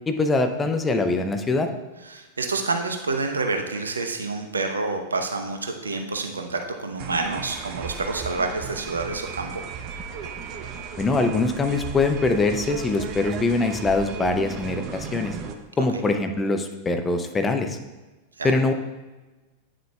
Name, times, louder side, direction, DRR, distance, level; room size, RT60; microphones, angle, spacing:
voice 1, 0.1-1.7 11.0-15.4 15.8-17.8 18.4-18.7, left 3 dB, 15° left, 6 dB, 0.6 m, -23 dB
voice 2, 2.1-9.6 15.8-16.0 18.4-18.5, right 3 dB, 75° right, 5 dB, 0.7 m, -28 dB
sound 1, 7.0-15.6, right 6 dB, 40° right, 0.6 m, -36 dB
9.0 x 6.4 x 2.3 m, 1.2 s
figure-of-eight pair, 90°, 0 cm